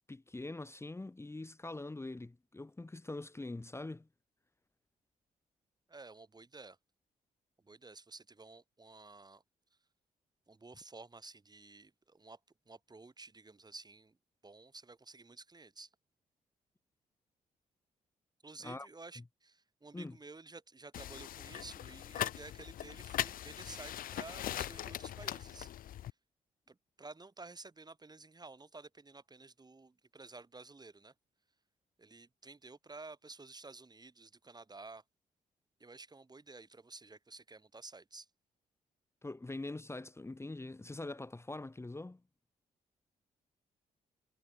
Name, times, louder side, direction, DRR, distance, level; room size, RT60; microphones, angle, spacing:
voice 1, 0.1-4.1 18.6-18.9 19.2-19.3 19.9-20.2 39.2-42.2, left 2 dB, 20° left, 1.1 m, -43 dB
voice 2, 5.9-6.8 7.6-9.4 10.5-12.4 12.7-14.2 14.4-15.9 18.4-25.7 26.7-31.1 32.0-35.0 35.8-38.3, right 3 dB, 25° right, 3.6 m, -52 dB
sound 1, 20.9-26.1, left 12 dB, 75° left, 0.7 m, -40 dB
supercardioid pair, 60°, 15 cm